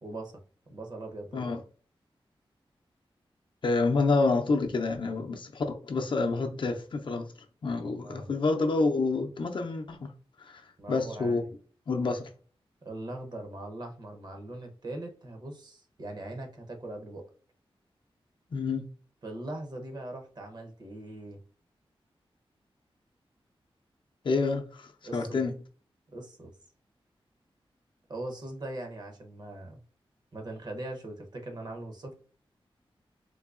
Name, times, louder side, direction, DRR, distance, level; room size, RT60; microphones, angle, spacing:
voice 1, 0.0-0.4 0.7-1.6 8.0-8.3 10.8-11.5 12.8-17.2 19.2-21.4 25.0-25.4 26.1-26.5 28.1-29.8 30.3-32.1, right 2 dB, 45° right, 0.7 m, -40 dB
voice 2, 3.6-7.2 7.6-10.1 10.4-10.6 10.9-11.4 11.9-12.3 18.5-18.9 24.2-25.5, left 3 dB, 55° left, 0.5 m, -28 dB
3.8 x 2.6 x 2.4 m
wide cardioid pair, 140°, 10 cm